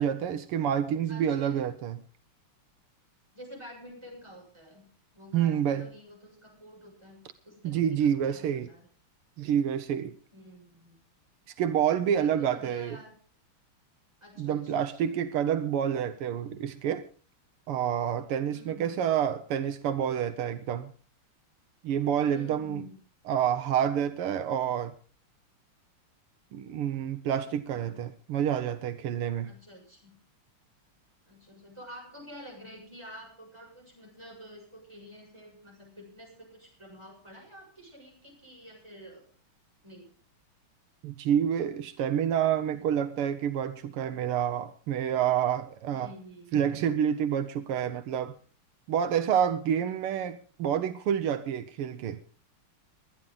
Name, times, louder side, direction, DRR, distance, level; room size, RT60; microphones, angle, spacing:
voice 1, 0.0-2.0 5.3-5.9 7.6-8.7 9.4-10.2 11.6-13.0 14.4-17.1 17.7-20.9 21.8-22.8 23.3-24.9 26.5-29.5 41.0-46.1 46.5-48.4 48.9-52.2, right 9 dB, 80° right, 1.8 m, -28 dB
voice 2, 1.1-1.6 3.3-4.9 5.1-8.9 10.3-11.0 12.1-13.2 14.2-15.1 18.5-19.1 22.2-23.0 27.7-28.0 29.4-30.2 31.3-39.3 39.8-40.1 45.9-46.6 49.8-50.3, equal, 10° right, 7.0 m, -49 dB
22.5 x 10.5 x 3.8 m
omnidirectional pair, 2.4 m